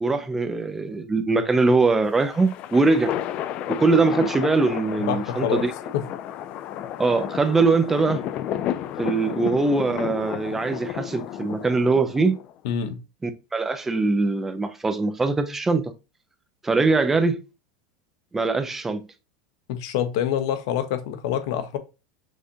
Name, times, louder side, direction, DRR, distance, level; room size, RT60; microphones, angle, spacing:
voice 1, 0.0-3.2 3.8-5.7 7.0-8.2 9.0-12.4 13.2-15.9 16.6-17.4 18.3-19.0, right 3 dB, 10° right, 0.5 m, -22 dB
sound 1, 2.0-12.5, left 11 dB, 45° left, 0.3 m, -32 dB
voice 2, 5.0-5.7 5.9-6.1 12.6-13.0 19.7-21.8, left 9 dB, 70° left, 0.8 m, -26 dB
6.3 x 2.5 x 2.7 m
supercardioid pair, 120°, 3 cm